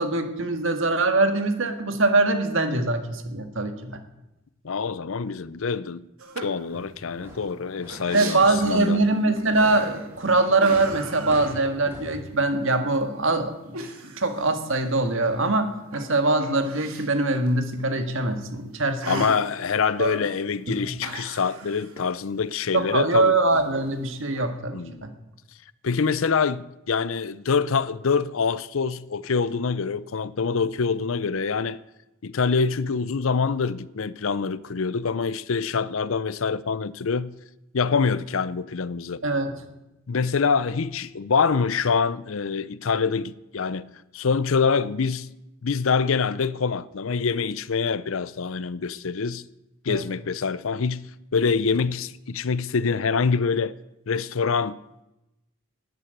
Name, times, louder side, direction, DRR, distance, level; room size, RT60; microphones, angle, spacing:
voice 1, 0.0-4.0 8.1-19.2 20.7-20.9 22.7-25.1 39.2-39.6 49.9-50.0, right 2 dB, 60° right, 1.8 m, -23 dB
voice 2, 4.6-6.0 6.4-9.0 19.1-23.3 24.7-25.1 25.8-31.8 32.2-37.3 37.7-39.2 40.1-45.3 45.6-49.4 49.8-51.0 51.3-53.7 54.1-54.8, left 5 dB, 70° left, 0.6 m, -25 dB
sound 1, 6.2-6.6 7.0-7.1 7.4-9.0 9.4-10.2 10.6-12.1 12.4-12.5 13.7-15.5 15.8-17.1 17.5-17.6 17.8-17.9 19.0-19.4 19.9-20.3 20.7-22.1 23.5-24.4, right 3 dB, 80° right, 2.5 m, -37 dB
sound 2, 6.7-12.2, equal, 10° right, 5.2 m, -42 dB
12.0 x 9.6 x 9.4 m
head